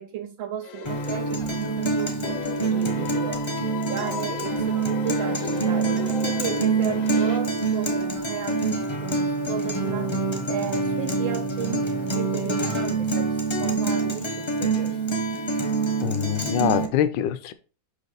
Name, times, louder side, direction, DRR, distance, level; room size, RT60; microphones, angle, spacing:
voice 1, 0.0-10.1 10.5-15.3 16.2-16.3, right 9 dB, 85° right, 1.6 m, -34 dB
sound 1, 0.6-1.9 2.2-7.4, left 5 dB, 60° left, 0.9 m, -35 dB
Guitar, 0.8-16.9, right 3 dB, 25° left, 0.7 m, -26 dB
voice 2, 16.0-17.5, left 10 dB, 75° left, 1.3 m, -24 dB
5.9 x 5.2 x 4.0 m
omnidirectional pair, 2.1 m